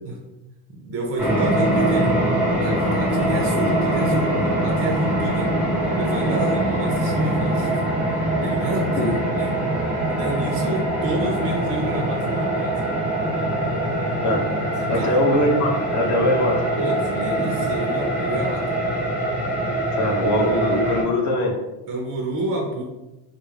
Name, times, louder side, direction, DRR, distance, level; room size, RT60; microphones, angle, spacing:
voice 1, 0.7-2.1 2.6-4.3 4.6-5.5 6.0-7.8 8.3-9.5 10.1-12.8 14.8-15.1 16.8-18.6 21.9-22.8, right 1 dB, 35° right, 0 dB, 0.4 m, -29 dB
sound 1, 1.2-21.0, right 1 dB, 5° right, 0.8 m, -23 dB
voice 2, 14.9-16.7 19.9-21.6, left 1 dB, 40° left, 0 dB, 0.7 m, -21 dB
2.3 x 2.0 x 3.1 m, 1.0 s
cardioid pair, 105°, 44 cm